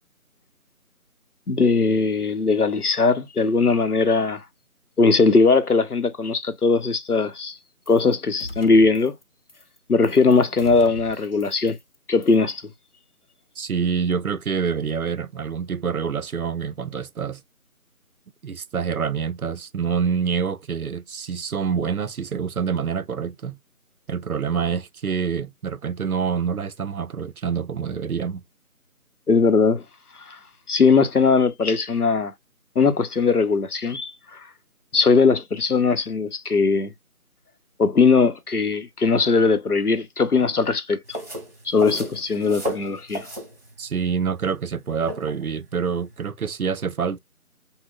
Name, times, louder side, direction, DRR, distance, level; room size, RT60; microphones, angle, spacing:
voice 1, 1.5-4.4 5.0-7.6 7.9-9.1 9.9-11.8 12.1-12.6 29.3-29.8 30.3-30.4 30.7-32.3 32.8-34.4 34.9-36.9 37.8-41.2 41.6-43.3, left 4 dB, 90° left, 0.9 m, -19 dB
sound 1, 7.9-8.1 8.4-9.2 9.5-9.8 10.0-12.0 12.2-12.5, left 1 dB, 40° left, 0.7 m, -40 dB
voice 2, 13.6-17.4 18.4-23.6 24.1-28.4 43.8-47.2, right 6 dB, 70° right, 0.6 m, -26 dB
sound 2, 41.0-46.3, equal, 40° right, 2.0 m, -35 dB
5.6 x 2.2 x 2.4 m
figure-of-eight pair, 170°, 44 cm